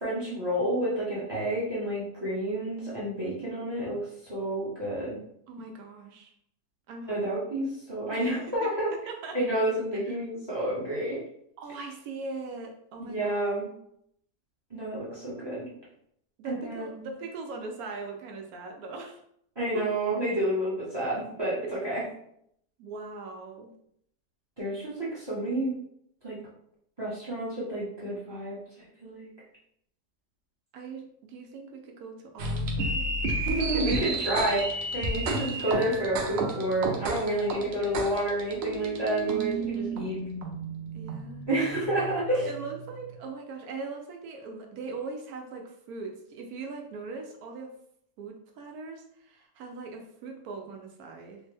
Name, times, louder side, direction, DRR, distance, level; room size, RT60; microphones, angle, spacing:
voice 1, 0.0-5.2 7.1-8.9 9.3-11.2 13.0-13.7 14.7-15.7 16.5-17.1 19.6-22.0 24.6-25.8 26.2-26.4 27.0-29.3 33.4-40.2 41.5-42.5, right 1 dB, 20° right, -8 dB, 0.8 m, -30 dB
voice 2, 5.5-6.3 6.9-7.6 8.1-8.7 9.1-9.4 10.1-10.2 11.6-13.4 16.4-19.2 21.6-21.7 22.8-23.7 30.7-34.3 35.7-35.9 40.9-41.5 42.4-47.7 48.2-51.4, right 3 dB, 70° right, 2 dB, 1.0 m, -40 dB
sound 1, 32.4-43.1, right 1 dB, 85° right, 0.5 m, -32 dB
3.3 x 2.0 x 3.3 m, 0.71 s
omnidirectional pair, 1.8 m